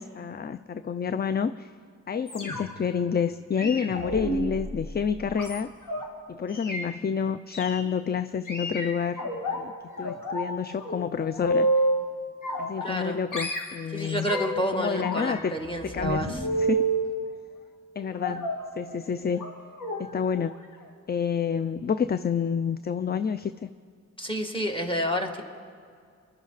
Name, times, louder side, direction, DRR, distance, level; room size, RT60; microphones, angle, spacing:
voice 1, 0.0-1.7 2.1-5.7 6.3-9.2 9.5-9.7 10.0-11.7 12.6-14.3 14.7-15.5 15.8-16.3 16.6-16.9 18.0-19.5 20.0-20.5 21.1-23.7, left 7 dB, 30° left, 13 dB, 0.4 m, -29 dB
sound 1, 2.3-2.9 3.6-6.0 6.5-6.8 7.5-7.8 8.5-9.6 10.0-10.5 10.8-12.0 12.4-13.1 13.3-14.6 14.9-17.0 18.2-18.6 19.3-19.5 19.8-20.0 20.3-20.5 20.8-20.9, right 1 dB, 75° left, 2.0 m, -29 dB
voice 2, 12.8-13.2 13.9-16.4 18.3-18.4 24.2-25.4, equal, 15° left, 3 dB, 2.1 m, -29 dB
24.0 x 11.5 x 4.1 m, 2.1 s
cardioid pair, 45°, 32 cm